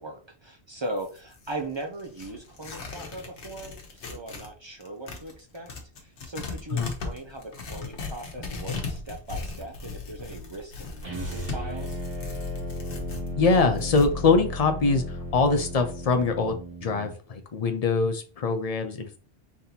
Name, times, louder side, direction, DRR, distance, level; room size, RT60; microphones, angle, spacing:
voice 1, 0.0-5.7 6.2-12.0, right 2 dB, 35° right, 3 dB, 0.4 m, -38 dB
Tearing, 0.8-4.5 4.8-14.1, left 4 dB, 90° left, 1.2 m, -38 dB
sound 1, 11.0-17.2, left 1 dB, 55° right, 1.9 m, -35 dB
voice 2, 13.4-19.2, left 4 dB, 45° left, 7 dB, 0.5 m, -24 dB
4.0 x 3.5 x 2.8 m, 0.37 s
omnidirectional pair, 1.1 m